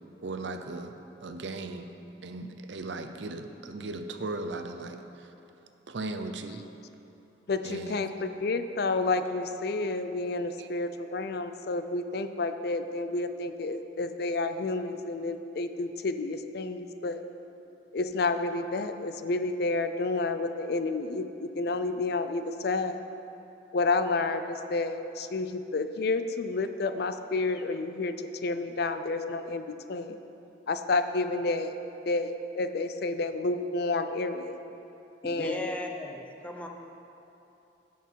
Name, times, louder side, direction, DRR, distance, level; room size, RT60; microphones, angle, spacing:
voice 1, 0.2-0.9 1.2-1.9 2.2-5.0 5.9-6.6 7.6-8.0 10.6-10.7, right 2 dB, 75° right, 7 dB, 0.7 m, -37 dB
voice 2, 7.5-17.2 17.9-23.0 23.7-28.1 28.4-30.2 30.7-31.7 32.1-34.6 35.2-35.7, left 3 dB, 60° left, 9 dB, 0.5 m, -30 dB
voice 3, 35.2-36.7, left 1 dB, 5° left, 1 dB, 0.7 m, -36 dB
17.0 x 5.9 x 4.6 m, 3.0 s
head